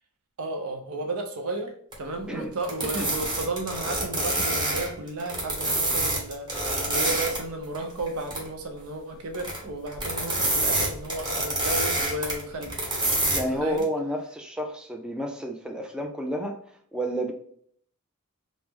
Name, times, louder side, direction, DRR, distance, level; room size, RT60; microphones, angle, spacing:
voice 1, 0.4-12.8 13.4-13.8, right 2 dB, 80° right, 4 dB, 0.6 m, -33 dB
sound 1, 1.9-2.0 2.6-7.4 7.7-8.5 9.3-9.6 9.9-13.4 13.8-13.9, right 2 dB, 20° right, 1.0 m, -27 dB
voice 2, 13.3-16.5 16.9-17.3, right 1 dB, 5° right, 2 dB, 0.3 m, -30 dB
3.1 x 2.0 x 3.4 m, 0.63 s
head